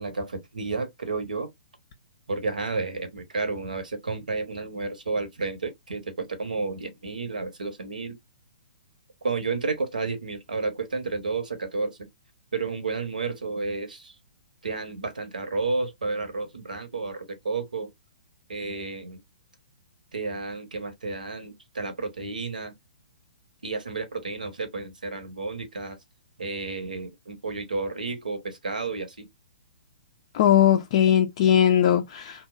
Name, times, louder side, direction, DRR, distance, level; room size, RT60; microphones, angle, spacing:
voice 1, 0.0-1.5 2.3-8.2 9.2-12.0 12.5-14.1 14.6-17.9 18.5-19.2 20.1-22.7 23.6-26.0 26.4-29.3, right 3 dB, 75° right, 0.8 m, -31 dB
voice 2, 30.3-32.5, left 10 dB, 45° left, 0.3 m, -19 dB
2.8 x 2.1 x 2.2 m
figure-of-eight pair, 120°, 4 cm